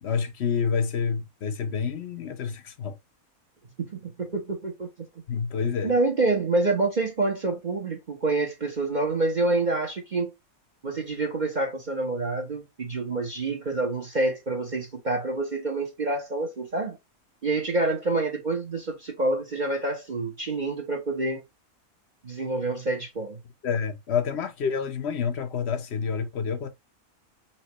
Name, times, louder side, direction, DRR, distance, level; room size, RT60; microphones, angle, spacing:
voice 1, 0.0-3.0 5.3-5.9 23.6-26.7, left 6 dB, 55° left, 1.1 m, -28 dB
voice 2, 3.9-4.9 5.8-10.3 10.8-17.0 17.4-21.4 22.2-23.4, right 2 dB, 35° right, 1.2 m, -27 dB
5.9 x 2.6 x 3.1 m
omnidirectional pair, 1.5 m